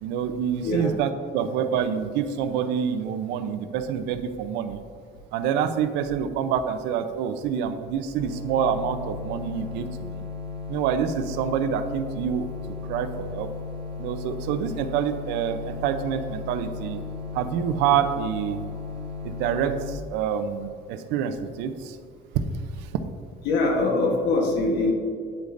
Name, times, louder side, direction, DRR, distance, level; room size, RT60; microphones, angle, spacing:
voice 1, 0.0-4.8 5.3-10.2 10.7-12.5 12.9-13.5 14.0-17.0 17.3-18.6 19.2-22.0 22.3-22.4 22.8-22.9, right 8 dB, 85° right, 10 dB, 0.6 m, -27 dB
voice 2, 0.6-0.9 23.4-24.9, left 2 dB, 75° left, 1 dB, 1.2 m, -23 dB
sound 1, 8.2-19.9, left 4 dB, 35° right, 1.3 m, -35 dB
9.2 x 8.3 x 2.6 m, 2.2 s
cardioid pair, 130°, 17 cm